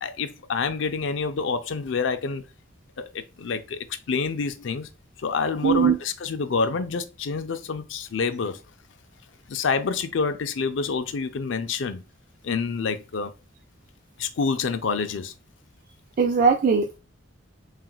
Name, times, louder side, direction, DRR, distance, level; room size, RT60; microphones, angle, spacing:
voice 1, 0.0-2.4 3.0-3.8 4.1-4.9 5.2-8.6 9.5-12.0 12.4-13.3 14.2-15.3, left 5 dB, 70° left, 0.5 m, -27 dB
voice 2, 5.6-6.0 16.2-17.0, right 6 dB, 45° right, 0.4 m, -20 dB
5.8 x 2.4 x 2.3 m
head